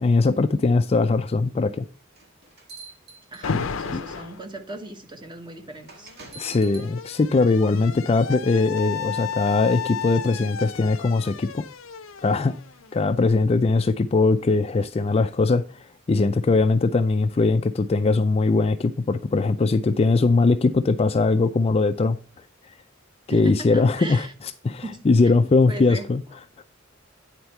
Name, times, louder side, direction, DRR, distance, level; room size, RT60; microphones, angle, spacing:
voice 1, 0.0-1.9 3.9-4.0 6.4-11.7 12.2-12.5 12.9-22.2 23.3-24.3 24.6-26.2, left 3 dB, 30° left, 0.4 m, -21 dB
sound 1, 2.1-3.9 4.7-4.8 5.9-6.9, right 3 dB, 55° right, 1.9 m, -44 dB
voice 2, 3.3-6.1 23.3-24.3 24.8-25.3 25.7-26.1, right 2 dB, 25° right, 1.2 m, -38 dB
Alarm, 3.4-4.4 5.6-13.3, left 6 dB, 70° left, 0.6 m, -34 dB
9.6 x 4.4 x 4.4 m
head